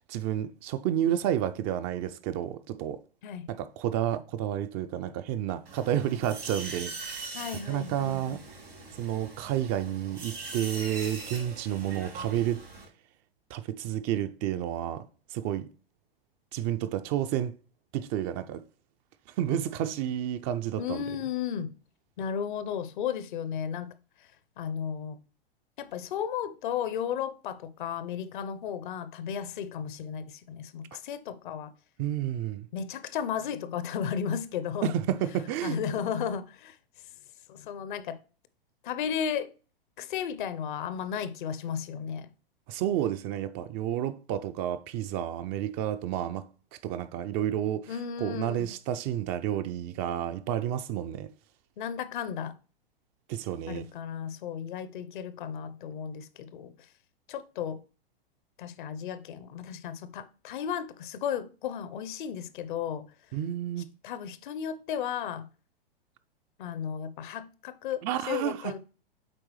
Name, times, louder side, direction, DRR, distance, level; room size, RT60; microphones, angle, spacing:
voice 1, 0.0-3.0 3.5-6.9 7.7-8.4 9.0-12.6 13.5-15.0 15.3-15.7 16.5-17.5 17.9-18.6 19.4-21.0 32.0-32.7 34.8-35.8 42.7-51.3 53.3-53.9 63.3-63.9 68.0-68.7, right 11 dB, 30° right, 0.4 m, -30 dB
sound 1, 5.7-12.9, right 3 dB, 85° right, 3.3 m, -42 dB
voice 2, 7.3-8.4 20.8-21.7 22.2-23.9 24.6-25.2 25.8-31.7 32.7-34.9 35.6-36.8 37.5-38.2 38.8-39.5 40.0-42.3 47.9-48.7 51.8-52.6 53.7-56.7 57.3-57.8 58.6-63.1 64.0-65.5 66.6-68.8, left 8 dB, 55° left, 0.7 m, -34 dB
7.6 x 4.6 x 3.1 m
figure-of-eight pair, 105°, 29 cm